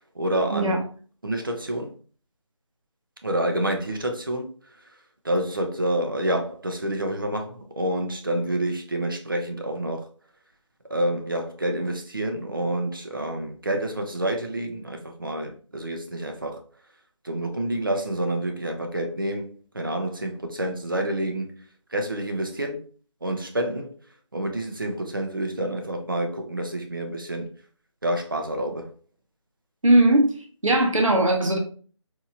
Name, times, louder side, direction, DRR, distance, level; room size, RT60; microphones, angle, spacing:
voice 1, 0.2-0.8 1.2-1.9 3.2-4.5 5.2-10.1 10.9-16.6 17.2-21.5 21.9-22.8 23.2-23.9 24.3-27.5 28.0-28.9, right 1 dB, 40° right, 0.6 m, -28 dB
voice 2, 29.8-30.3 30.6-31.6, right 1 dB, 85° right, 1.2 m, -19 dB
4.3 x 2.7 x 2.4 m
figure-of-eight pair, 180°, 16 cm